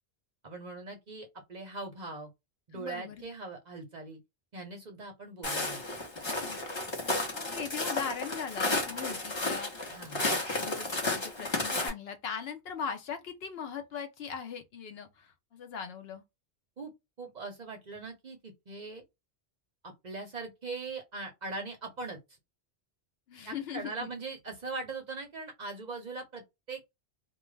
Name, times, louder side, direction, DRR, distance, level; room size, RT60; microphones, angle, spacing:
voice 1, 0.4-2.3 2.7-4.2 4.5-5.8 9.9-10.2 16.8-16.9 17.2-19.0 19.8-22.2 23.4-26.8, right 3 dB, 50° right, 0.6 m, -41 dB
voice 2, 2.7-3.2 6.4-6.6 6.9-16.2 23.3-24.1, left 7 dB, 70° left, 0.8 m, -40 dB
Walk footsteps, 5.4-11.9, left 2 dB, 25° left, 0.8 m, -32 dB
2.4 x 2.2 x 3.0 m
omnidirectional pair, 1.2 m